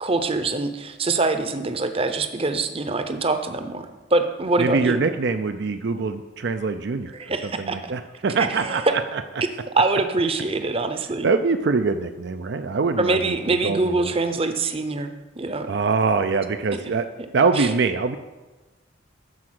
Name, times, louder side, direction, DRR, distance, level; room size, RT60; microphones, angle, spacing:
voice 1, 0.0-3.9 4.1-5.0 7.1-7.9 8.4-8.9 9.7-11.3 13.0-15.7 17.6-17.7, right 3 dB, 30° right, 8 dB, 0.7 m, -24 dB
voice 2, 4.6-7.1 7.4-9.2 11.2-13.4 13.6-14.1 15.7-17.1 17.3-18.2, right 4 dB, 60° right, 8 dB, 0.5 m, -23 dB
12.5 x 4.8 x 7.7 m, 1.2 s
head